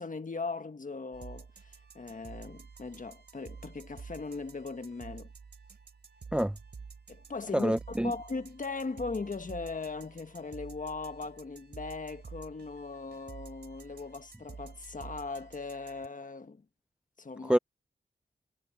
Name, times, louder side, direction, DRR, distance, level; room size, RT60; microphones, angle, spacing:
voice 1, 0.0-5.3 7.1-16.6 17.2-17.6, left 4 dB, 45° left, 1.5 m, -39 dB
sound 1, 1.1-16.1, right 5 dB, 65° right, 3.1 m, -50 dB
voice 2, 7.5-8.1 17.4-17.6, right 1 dB, 5° right, 0.5 m, -26 dB
wide cardioid pair, 80°, 18 cm